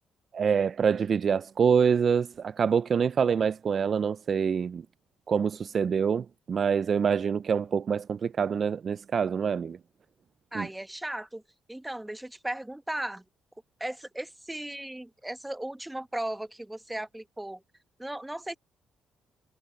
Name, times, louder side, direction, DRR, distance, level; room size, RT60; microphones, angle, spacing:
voice 1, 0.3-4.8 5.3-9.8 10.5-10.7, right 6 dB, 50° right, 0.4 m, -26 dB
voice 2, 10.5-11.4 11.7-13.2 13.8-17.6 18.0-18.6, right 1 dB, 10° right, 1.0 m, -36 dB
cardioid pair, 90°, 0 cm